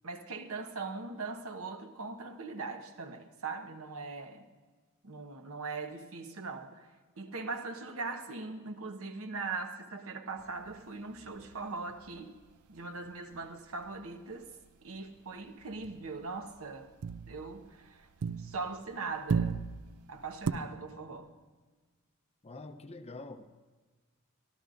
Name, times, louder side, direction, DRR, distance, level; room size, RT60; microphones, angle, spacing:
voice 1, 0.0-4.4 5.0-6.9 7.2-12.3 12.7-14.5 14.8-16.9 17.3-18.1 18.4-19.6 20.1-21.3, right 4 dB, 70° right, 1.1 m, -40 dB
sound 1, 10.4-14.1 14.4-14.7 15.0-18.9 19.1-20.5, right 5 dB, 90° right, 0.5 m, -37 dB
voice 2, 22.4-23.6, left 2 dB, 30° left, 0.7 m, -46 dB
25.0 x 13.0 x 2.6 m
head